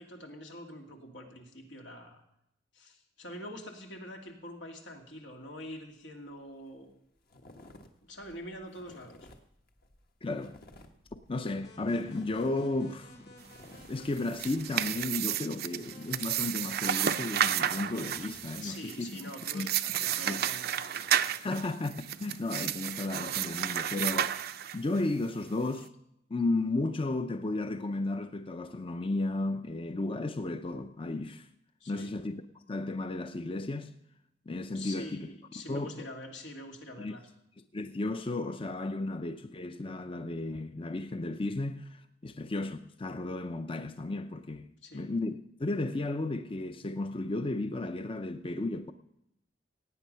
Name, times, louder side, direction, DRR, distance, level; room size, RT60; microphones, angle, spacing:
voice 1, 0.0-2.2 2.7-6.9 8.0-9.3 18.6-21.3 31.8-32.1 34.7-37.3 44.8-45.1, left 1 dB, 90° left, 2.5 m, -45 dB
sound 1, 6.3-6.4 6.6-6.9 7.2-15.1, left 1 dB, 55° left, 1.3 m, -56 dB
voice 2, 10.2-10.6 11.3-13.2 13.9-19.7 20.0-20.4 21.3-21.9 22.2-24.4 24.7-25.9 26.3-31.5 31.9-32.4 32.7-33.9 34.5-35.3 35.7-36.1 37.0-37.2 37.7-48.9, left 2 dB, 30° left, 0.6 m, -34 dB
sound 2, 11.5-14.9 15.8-18.6, left 2 dB, 70° left, 3.7 m, -54 dB
sound 3, 14.1-25.0, right 10 dB, 60° right, 0.5 m, -32 dB
17.0 x 9.2 x 5.6 m
head